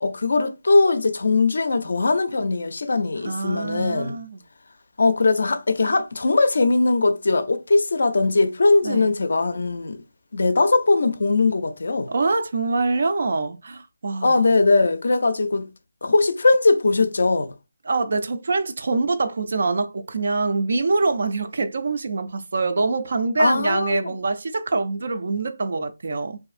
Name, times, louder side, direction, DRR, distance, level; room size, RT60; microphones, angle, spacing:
voice 1, 0.0-4.2 5.0-10.0 10.3-12.1 14.2-15.7 16.0-17.5 23.4-24.1, left 3 dB, 65° left, 0.4 m, -20 dB
voice 2, 3.2-4.4 8.8-9.1 12.1-14.5 17.9-26.4, right 3 dB, 50° right, 0.3 m, -24 dB
2.6 x 2.5 x 2.4 m
hypercardioid pair, 175°, 0 cm